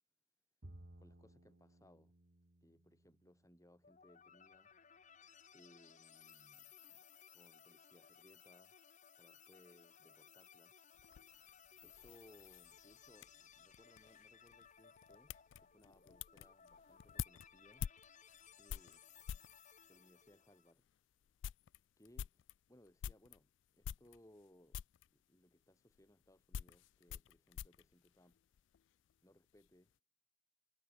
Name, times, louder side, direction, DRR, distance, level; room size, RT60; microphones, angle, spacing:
Bowed string instrument, 0.6-4.0, right 1 dB, 60° right, 2.0 m, -60 dB
voice 1, 1.0-2.1 2.6-4.7 5.5-8.8 9.2-10.7 11.8-17.9 18.6-19.0 19.9-20.9 22.0-24.8 25.1-28.4 29.2-29.9, left 1 dB, 20° left, 3.0 m, -67 dB
sound 1, 3.8-20.7, left 8 dB, 40° left, 1.6 m, -62 dB
sound 2, 10.9-19.6 20.3-20.4 20.8-20.9 21.2-23.4 23.8-24.5 24.7-25.1 25.9-28.8 29.1-29.7, left 8 dB, 70° left, 0.3 m, -49 dB
head